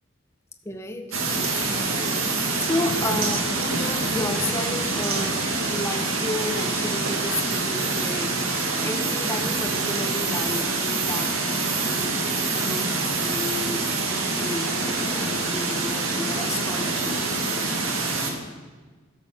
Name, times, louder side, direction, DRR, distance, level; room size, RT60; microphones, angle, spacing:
voice 1, 0.6-12.1 12.5-17.2, left 2 dB, 15° left, 5 dB, 0.7 m, -33 dB
sound 1, 1.1-18.3, right 3 dB, 90° right, 1.6 m, -26 dB
12.0 x 6.7 x 6.3 m, 1.4 s
head